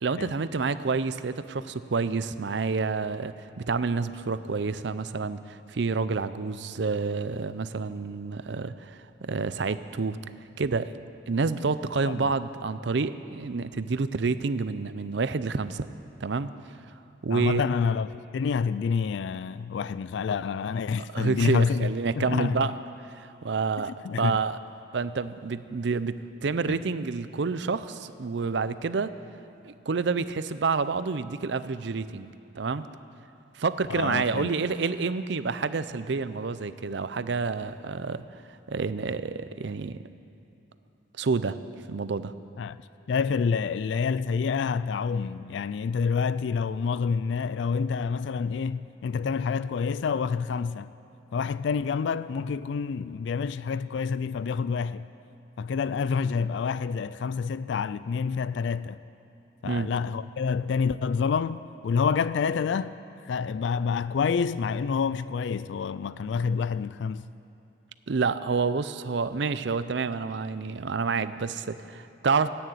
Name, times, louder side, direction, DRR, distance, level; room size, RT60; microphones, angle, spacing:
voice 1, 0.0-10.2 10.6-10.9 11.3-15.9 16.2-16.5 17.2-17.6 21.1-22.7 23.1-24.6 24.9-29.1 29.6-32.3 32.6-32.8 33.5-38.2 38.7-40.0 41.2-41.6 41.9-42.3 59.6-59.9 68.1-72.5, right 4 dB, 65° right, 0.5 m, -28 dB
voice 2, 17.3-22.7 23.8-24.4 26.7-26.8 33.9-34.5 42.6-42.8 43.1-50.9 51.3-55.1 55.6-59.0 59.6-63.0 63.2-67.3, left 5 dB, 70° left, 0.3 m, -28 dB
14.5 x 9.3 x 9.2 m
head